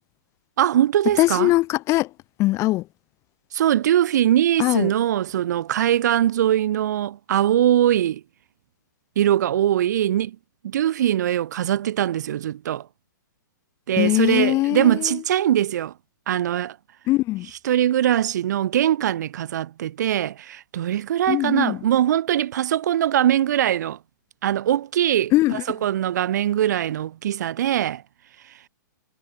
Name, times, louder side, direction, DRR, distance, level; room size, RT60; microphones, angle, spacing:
voice 1, 0.6-1.5 3.5-8.2 9.2-10.4 10.6-12.9 13.9-15.9 16.3-16.8 17.6-24.0 24.4-25.3 25.8-28.0, right 11 dB, 55° right, 0.7 m, -21 dB
voice 2, 1.2-2.1 2.4-2.9 4.6-4.9 13.9-15.2 17.1-17.5 21.3-21.8 25.3-25.6, left 18 dB, 25° left, 0.8 m, -21 dB
hypercardioid pair, 120°, 11 cm